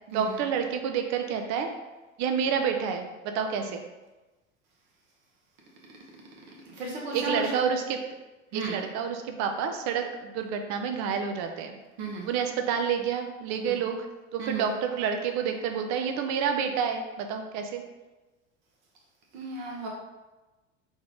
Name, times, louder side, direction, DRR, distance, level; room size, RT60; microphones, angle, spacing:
voice 1, 0.1-1.7 2.2-3.8 7.1-8.0 8.5-11.8 12.2-14.1 14.3-17.8, right 7 dB, 50° right, 5 dB, 0.6 m, -29 dB
voice 2, 6.7-7.6 8.5-8.8 12.0-12.3 13.7-13.8 14.4-14.6 19.3-19.9, right 2 dB, 70° right, -3 dB, 1.2 m, -34 dB
3.6 x 2.5 x 3.4 m, 1.1 s
hypercardioid pair, 90°, 36 cm